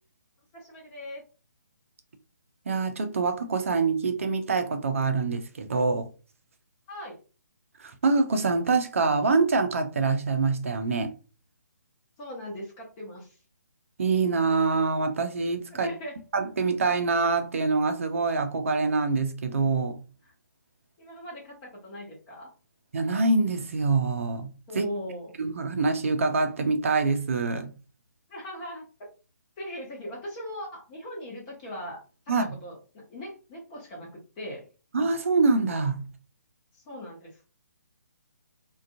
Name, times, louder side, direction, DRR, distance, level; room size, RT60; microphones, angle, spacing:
voice 1, 0.5-1.2 6.9-7.2 12.2-13.4 15.7-16.2 20.2-20.3 21.0-22.5 24.7-25.3 28.3-28.9 29.6-32.0 32.3-34.7 36.7-37.4, equal, 20° left, 0.7 m, -39 dB
voice 2, 2.7-6.1 7.8-11.1 14.0-15.9 16.3-20.0 22.9-24.5 24.8-24.9 25.4-27.7 32.3-32.6 34.9-36.1, right 4 dB, 45° right, 0.5 m, -25 dB
2.4 x 2.2 x 2.4 m
figure-of-eight pair, 140°, 10 cm